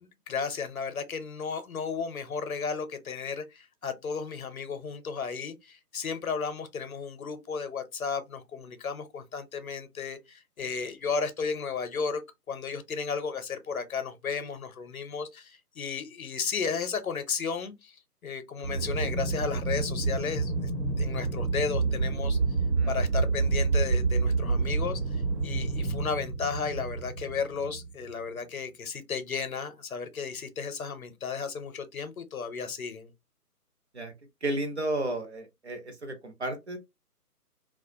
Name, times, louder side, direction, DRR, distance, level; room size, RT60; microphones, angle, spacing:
voice 1, 0.3-12.2 12.5-18.0 18.2-20.7 21.0-22.4 22.9-33.1, left 5 dB, 60° left, 0.6 m, -34 dB
Aircraft, 18.6-28.1, right 4 dB, 85° right, 1.3 m, -28 dB
voice 2, 34.4-36.8, right 1 dB, 45° right, 0.6 m, -33 dB
2.3 x 2.1 x 2.6 m
figure-of-eight pair, 145°, 47 cm